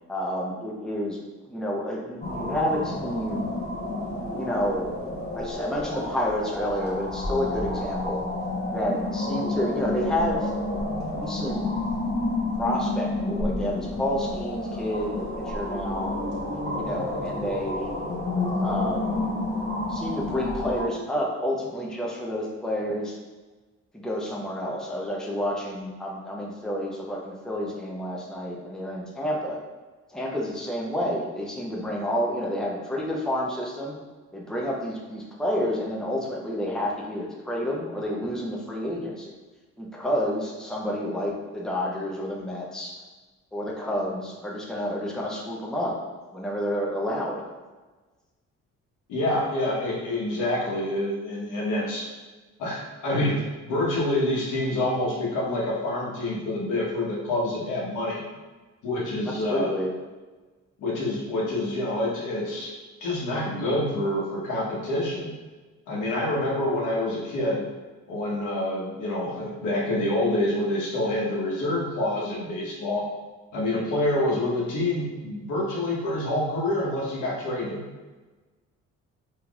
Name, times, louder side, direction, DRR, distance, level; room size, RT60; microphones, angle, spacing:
voice 1, 0.1-1.2 1.4-3.5 4.3-5.0 5.3-8.2 8.7-10.8 11.1-11.6 12.6-16.1 16.7-18.0 18.6-19.3 19.9-23.2 23.9-29.6 30.1-33.9 34.3-39.3 39.8-42.9 43.5-46.0 46.3-47.4 59.2-59.9, equal, ahead, -3 dB, 0.6 m, -29 dB
sound 1, 2.2-20.8, left 2 dB, 35° left, 1.0 m, -30 dB
voice 2, 49.1-52.1 52.6-58.2 58.8-59.7 60.8-62.7 63.0-65.3 65.9-67.6 68.1-73.0 73.5-77.8, left 1 dB, 80° left, -4 dB, 1.1 m, -27 dB
3.6 x 2.9 x 2.4 m, 1.3 s
cardioid pair, 90°, 30 cm